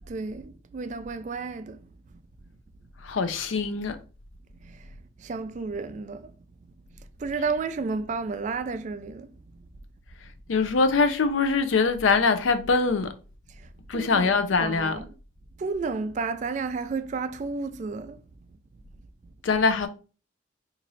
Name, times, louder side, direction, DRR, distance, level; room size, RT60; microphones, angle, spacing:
voice 1, 0.1-1.8 4.6-4.8 5.2-6.3 7.2-9.3 13.9-14.3 14.6-15.1 15.6-18.2, right 4 dB, 40° right, 0.3 m, -31 dB
voice 2, 3.0-4.0 10.5-13.1 13.9-15.0 19.4-19.9, left 4 dB, 85° left, 0.5 m, -23 dB
3.0 x 2.5 x 3.9 m
head